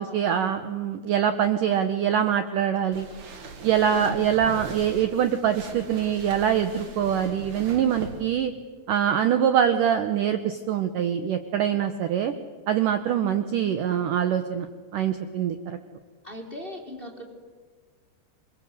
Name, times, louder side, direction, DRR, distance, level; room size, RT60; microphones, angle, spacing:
voice 1, 0.0-3.1 3.6-8.5 8.9-12.3 12.7-14.7 14.9-15.8, right 9 dB, 75° right, 8 dB, 2.1 m, -24 dB
sound 1, 2.9-8.2, right 3 dB, 50° right, 3.1 m, -41 dB
voice 2, 3.9-4.2 16.2-17.2, equal, 15° left, 1 dB, 2.7 m, -37 dB
27.5 x 22.0 x 8.0 m, 1.5 s
omnidirectional pair, 4.8 m